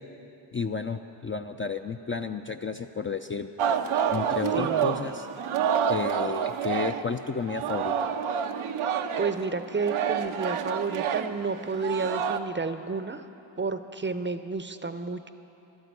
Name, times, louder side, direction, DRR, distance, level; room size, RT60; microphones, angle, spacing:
voice 1, 0.5-3.5 4.1-5.3 5.9-8.0, left 5 dB, 25° left, 6 dB, 0.4 m, -32 dB
Singing, 3.6-7.2 7.5-12.4, right 8 dB, 85° right, 0.7 m, -28 dB
voice 2, 4.5-5.1 8.9-13.3 13.6-15.3, right 4 dB, 25° right, 10 dB, 0.6 m, -31 dB
11.5 x 8.9 x 8.3 m, 2.9 s
cardioid pair, 55°, 48 cm